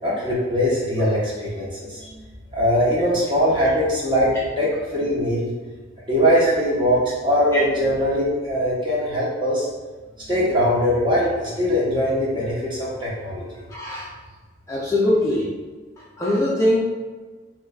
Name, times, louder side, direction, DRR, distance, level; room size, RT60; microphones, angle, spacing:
voice 1, 0.0-2.2 2.5-5.5 6.0-9.7 10.3-13.6, equal, 25° right, -6 dB, 0.9 m, -21 dB
voice 2, 13.7-14.1 14.7-15.5 16.2-16.8, left 1 dB, 15° left, -6 dB, 0.4 m, -21 dB
3.9 x 3.1 x 2.3 m, 1.3 s
head